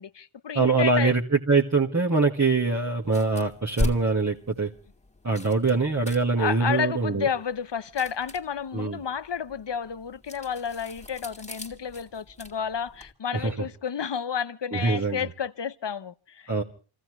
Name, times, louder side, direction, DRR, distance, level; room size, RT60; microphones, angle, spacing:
voice 1, 0.0-1.1 6.4-16.5, left 7 dB, 55° left, 0.8 m, -31 dB
voice 2, 0.5-4.7 5.2-7.3 8.7-9.0 13.3-13.7 14.7-15.3 16.5-16.6, right 3 dB, 35° right, 1.8 m, -23 dB
sound 1, 3.0-13.1, left 2 dB, 15° left, 2.2 m, -39 dB
28.0 x 15.5 x 3.1 m
wide cardioid pair, 70°, 49 cm